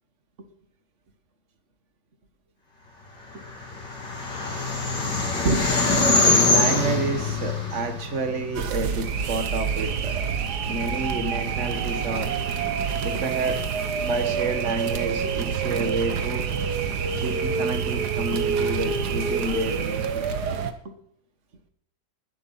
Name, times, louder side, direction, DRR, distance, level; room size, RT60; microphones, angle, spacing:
sound 1, 3.4-8.9, left 3 dB, 70° left, 4.2 m, -23 dB
voice 1, 5.4-10.3 10.6-12.3 13.0-13.6 14.0-16.4 17.2-20.3 20.9-21.0, right 3 dB, 40° right, 8 dB, 2.0 m, -30 dB
sound 2, 8.5-20.7, right 6 dB, 65° right, 1.7 m, -27 dB
20.0 x 11.5 x 5.7 m, 0.64 s
omnidirectional pair, 1.9 m